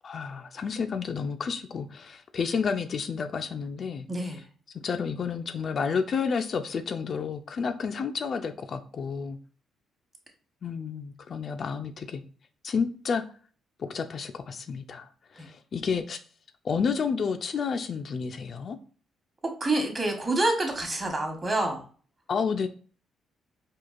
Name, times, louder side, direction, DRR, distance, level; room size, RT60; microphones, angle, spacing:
voice 1, 0.0-4.4 4.7-9.4 10.6-12.2 12.6-13.2 13.8-16.2 16.6-18.8 22.3-22.7, left 5 dB, 50° left, 7 dB, 0.3 m, -30 dB
voice 2, 4.1-4.4 15.4-15.5 19.6-21.8, right 2 dB, 25° right, 2 dB, 1.1 m, -27 dB
4.5 x 2.4 x 2.4 m, 0.42 s
cardioid pair, 90°, 0 cm